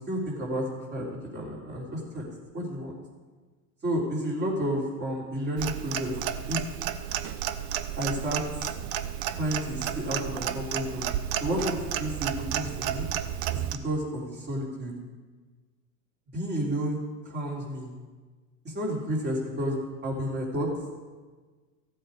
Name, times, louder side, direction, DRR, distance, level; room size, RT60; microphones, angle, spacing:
voice 1, 0.1-1.1 1.3-2.2 2.5-2.9 3.8-6.2 6.5-6.7 8.0-8.4 9.3-11.1 11.4-13.1 13.5-14.9 16.3-17.9 18.6-20.7, equal, 20° right, -4 dB, 3.5 m, -31 dB
Clock, 5.6-13.8, right 11 dB, 45° right, 0.7 m, -32 dB
14.5 x 7.8 x 4.9 m, 1.4 s
hypercardioid pair, 115°, 47 cm